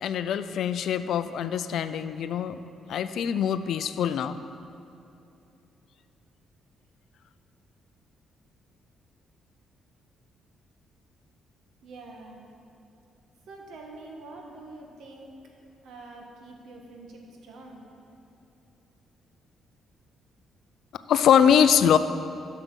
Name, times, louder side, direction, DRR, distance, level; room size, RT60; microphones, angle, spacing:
voice 1, 0.0-2.6 2.9-4.4 21.1-22.0, left 8 dB, 70° left, 12 dB, 0.4 m, -23 dB
voice 2, 11.8-12.4 13.5-15.3 15.8-17.8, right 2 dB, 75° right, 0 dB, 1.5 m, -45 dB
7.9 x 6.5 x 6.2 m, 2.8 s
cardioid pair, 90°, 0 cm